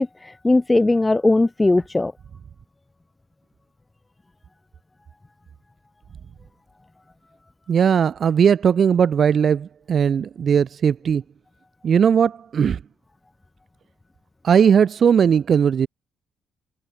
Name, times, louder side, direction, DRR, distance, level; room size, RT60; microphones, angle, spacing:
voice 1, 0.0-2.1, left 2 dB, 15° left, 0.4 m, -19 dB
voice 2, 7.7-11.2 11.8-12.8 14.4-15.9, right 7 dB, 55° right, 0.7 m, -18 dB
cardioid pair, 90°, 0 cm